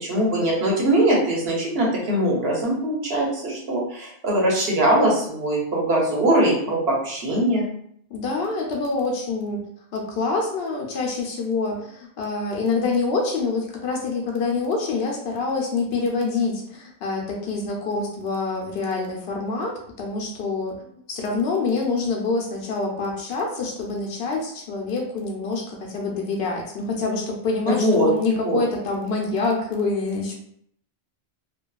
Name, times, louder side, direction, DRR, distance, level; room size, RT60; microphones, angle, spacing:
voice 1, 0.0-7.7 27.7-28.1 28.4-28.6, right 1 dB, 75° right, -3 dB, 1.0 m, -21 dB
voice 2, 8.1-9.6 9.9-30.3, left 3 dB, 80° left, 0 dB, 0.9 m, -26 dB
2.6 x 2.3 x 2.2 m, 0.67 s
omnidirectional pair, 1.0 m